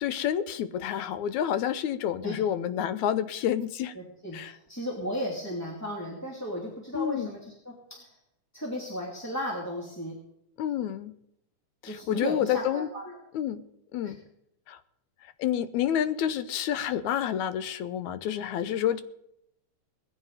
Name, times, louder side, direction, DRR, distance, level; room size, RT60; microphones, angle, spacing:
voice 1, 0.0-3.9 4.3-4.5 6.9-7.4 10.6-11.1 11.8-12.9 13.3-13.6 13.9-14.2 14.7-14.8 15.4-19.0, left 10 dB, 80° left, 12 dB, 2.1 m, -29 dB
voice 2, 3.9-8.2 8.5-10.2 11.8-13.2 14.0-14.1, equal, 5° left, -4 dB, 2.4 m, -35 dB
20.0 x 15.0 x 4.1 m, 0.80 s
omnidirectional pair, 3.4 m